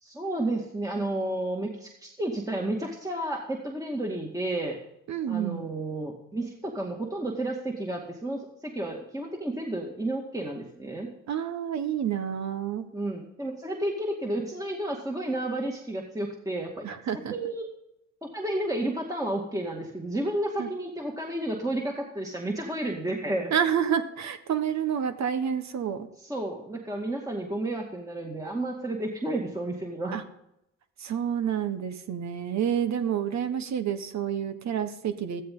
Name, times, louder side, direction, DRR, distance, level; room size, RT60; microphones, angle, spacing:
voice 1, 0.0-4.8 5.3-11.1 12.9-16.9 17.3-17.7 18.2-23.5 26.2-30.1, right 1 dB, 10° right, 0 dB, 2.2 m, -31 dB
voice 2, 5.1-5.6 11.3-12.8 16.8-17.3 20.6-20.7 23.5-26.1 30.1-30.2 31.0-35.4, right 8 dB, 65° right, 9 dB, 1.4 m, -29 dB
15.0 x 13.0 x 3.9 m, 0.81 s
cardioid pair, 90°, 30 cm